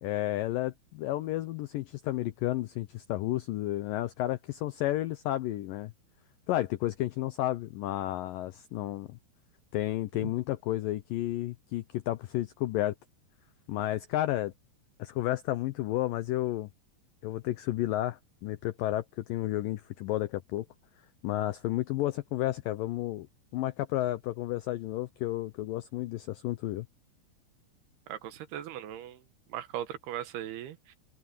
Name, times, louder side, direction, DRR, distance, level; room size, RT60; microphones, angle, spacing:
voice 1, 0.0-5.9 6.5-9.1 9.7-12.9 13.7-14.5 15.0-16.7 17.2-20.7 21.2-23.3 23.5-26.9, left 15 dB, 90° left, 1.9 m, -32 dB
voice 2, 28.1-29.2 29.5-31.0, right 11 dB, 75° right, 3.0 m, -38 dB
open air
omnidirectional pair, 4.9 m